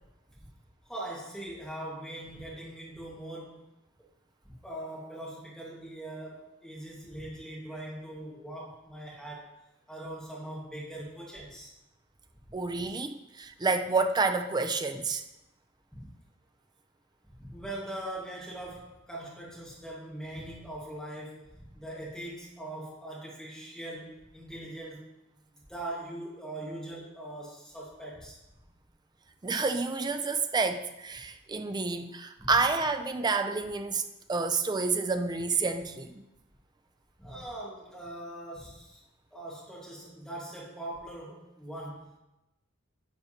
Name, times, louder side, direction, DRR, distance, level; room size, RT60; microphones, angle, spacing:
voice 1, 0.8-3.7 4.6-9.5 9.9-11.7 12.5-12.6 16.0-16.1 17.2-25.0 25.5-28.4 32.4-32.5 37.2-39.0 39.3-42.2, right 1 dB, 5° left, -5 dB, 1.6 m, -41 dB
voice 2, 12.5-15.2 29.4-36.2, right 4 dB, 20° right, 7 dB, 0.4 m, -29 dB
9.8 x 6.0 x 2.8 m, 0.93 s
head